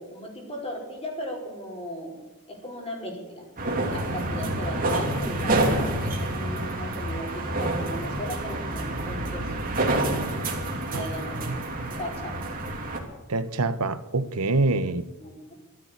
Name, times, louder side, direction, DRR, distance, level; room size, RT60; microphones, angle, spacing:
voice 1, 0.0-2.1 2.5-3.5 3.9-9.5 10.9-11.5 12.0-12.4 14.8-14.9 15.2-15.5, equal, 25° left, 0 dB, 4.6 m, -37 dB
sound 1, 3.6-13.0, right 2 dB, 40° right, 3.0 m, -28 dB
voice 2, 11.3-11.9 13.3-15.0, right 3 dB, 85° right, 12 dB, 1.1 m, -26 dB
13.5 x 13.0 x 8.2 m, 1.0 s
head